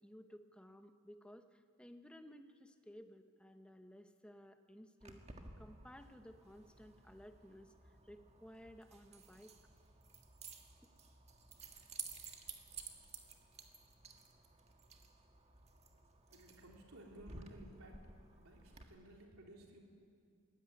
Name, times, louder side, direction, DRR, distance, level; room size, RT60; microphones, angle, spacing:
voice 1, 0.0-5.2 5.6-9.5, equal, 5° left, 7 dB, 0.9 m, -57 dB
Keys jangling, 5.0-18.8, right 5 dB, 30° right, 1.7 m, -54 dB
voice 2, 16.3-18.0 18.4-19.8, right 1 dB, 90° right, 0 dB, 3.5 m, -57 dB
21.5 x 17.0 x 9.6 m, 2.3 s
head